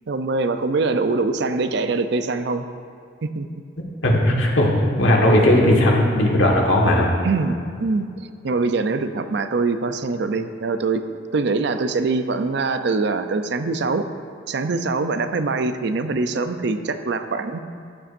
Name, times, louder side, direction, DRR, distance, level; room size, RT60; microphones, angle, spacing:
voice 1, 0.1-2.7 3.3-3.6 7.2-8.1 8.4-11.0 11.3-14.1 14.5-17.6, right 3 dB, 65° right, 9 dB, 0.5 m, -23 dB
voice 2, 4.0-7.2, left 1 dB, 85° left, -1 dB, 1.5 m, -17 dB
14.0 x 8.5 x 2.6 m, 2.3 s
head